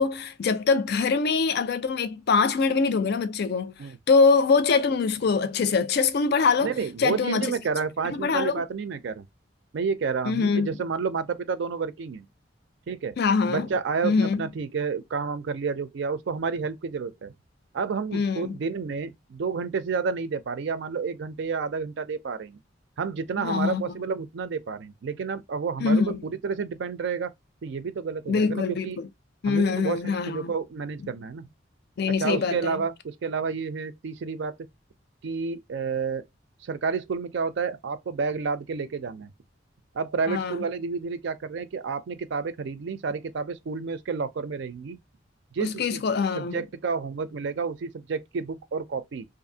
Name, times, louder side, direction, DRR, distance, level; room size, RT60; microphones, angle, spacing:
voice 1, 0.0-3.7 4.1-6.7 7.0-7.5 8.1-8.6 10.3-10.7 13.2-13.7 14.0-14.4 18.1-18.6 23.4-23.9 25.8-26.2 28.3-29.1 29.4-30.5 32.0-32.8 40.3-40.6 45.6-46.6, left 4 dB, 60° left, 0.4 m, -23 dB
voice 2, 6.6-9.2 9.7-12.3 12.9-13.1 13.5-17.3 17.7-22.6 23.0-27.3 27.6-29.0 29.5-31.5 32.2-34.5 35.2-36.2 36.6-39.3 39.9-45.0 45.5-46.1 46.3-49.2, right 5 dB, 65° right, 0.4 m, -30 dB
2.6 x 2.5 x 2.6 m
head